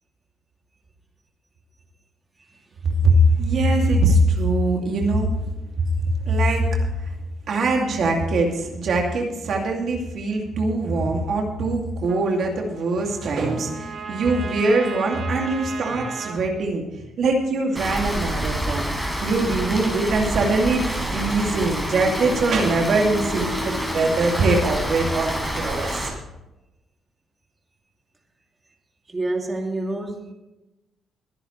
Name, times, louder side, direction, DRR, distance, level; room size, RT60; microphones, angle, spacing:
voice 1, 3.0-5.3 6.3-6.8 7.5-16.8 17.2-18.9 19.2-26.1, right 2 dB, 60° right, 1 dB, 2.4 m, -22 dB
Trumpet, 12.0-16.4, right 5 dB, 45° right, 2.3 m, -36 dB
Rain, 17.8-26.1, equal, 5° right, 4.2 m, -27 dB
voice 2, 29.1-30.3, right 2 dB, 25° right, 1 dB, 2.7 m, -28 dB
22.0 x 10.0 x 3.2 m, 0.98 s
cardioid pair, 90°, 0 cm